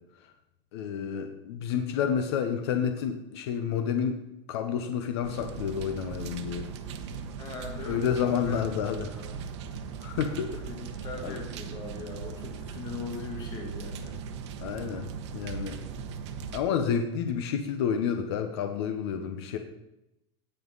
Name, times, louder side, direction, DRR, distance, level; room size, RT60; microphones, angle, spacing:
voice 1, 0.7-4.2 4.5-6.7 7.9-9.1 10.0-10.6 11.2-11.4 14.6-15.1 15.3-15.8 16.5-19.6, left 7 dB, 65° left, 6 dB, 1.0 m, -29 dB
sound 1, 5.2-16.6, right 6 dB, 85° right, 1.1 m, -39 dB
voice 2, 7.4-8.6 9.1-9.3 10.7-14.2, left 3 dB, 30° left, 2 dB, 1.4 m, -40 dB
17.0 x 5.8 x 4.1 m, 0.89 s
supercardioid pair, 180°, 14 cm